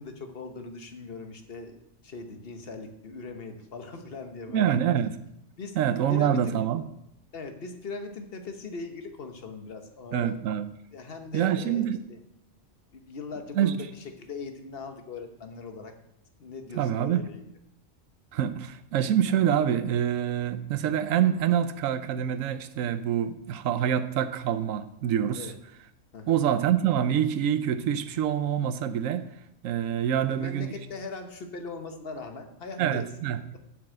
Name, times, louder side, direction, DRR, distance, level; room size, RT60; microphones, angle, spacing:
voice 1, 0.0-4.8 5.6-5.8 6.1-6.6 7.3-10.4 10.9-12.2 12.9-15.9 16.4-17.4 25.4-25.6 26.1-26.4 30.3-33.1, left 4 dB, 50° left, 1.2 m, -40 dB
voice 2, 4.5-5.1 5.7-6.8 10.1-10.7 11.3-12.0 13.5-13.8 16.7-17.3 18.3-25.5 26.3-29.2 29.6-30.7 32.8-33.4, right 9 dB, 80° right, 1.0 m, -26 dB
7.5 x 6.1 x 7.5 m
omnidirectional pair, 1.3 m